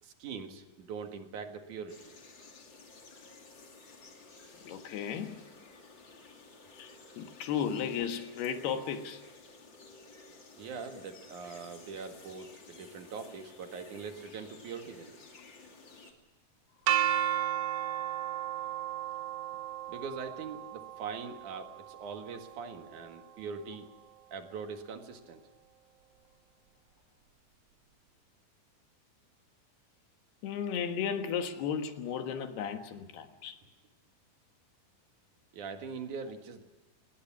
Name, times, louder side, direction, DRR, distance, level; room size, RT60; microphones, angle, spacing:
voice 1, 0.0-2.1 10.6-15.1 19.9-23.9 24.3-25.4 35.5-36.6, right 5 dB, 55° right, 2.8 m, -42 dB
sound 1, 1.9-16.1, left 3 dB, 30° left, 2.7 m, -54 dB
voice 2, 4.6-5.4 6.7-9.2 30.4-33.6, left 7 dB, 70° left, 3.4 m, -35 dB
sound 2, 16.9-22.8, right 12 dB, 80° right, 3.3 m, -34 dB
26.5 x 20.5 x 6.0 m
omnidirectional pair, 5.0 m